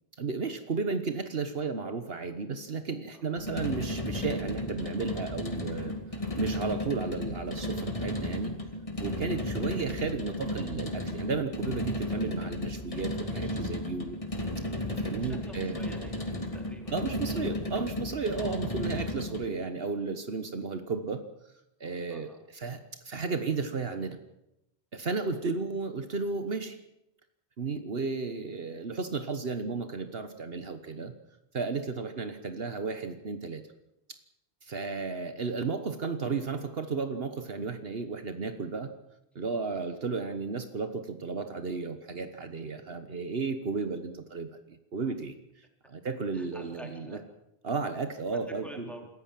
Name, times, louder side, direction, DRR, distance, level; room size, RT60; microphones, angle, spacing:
voice 1, 0.2-5.9 6.4-8.5 9.0-14.2 15.0-15.8 16.9-21.2 21.8-24.2 24.9-26.8 27.6-31.1 31.5-33.6 34.6-38.9 39.3-45.3 45.9-47.2 47.6-48.9, right 4 dB, 70° right, 9 dB, 1.5 m, -33 dB
sound 1, 3.4-19.5, left 1 dB, 30° left, 2.4 m, -34 dB
voice 2, 15.2-16.3 16.5-16.9 17.3-17.6 18.4-18.7 19.3-19.4 22.1-22.4 31.9-32.2 46.3-47.2 48.3-49.1, equal, ahead, 2 dB, 3.9 m, -48 dB
27.0 x 14.0 x 7.5 m, 0.86 s
omnidirectional pair, 1.1 m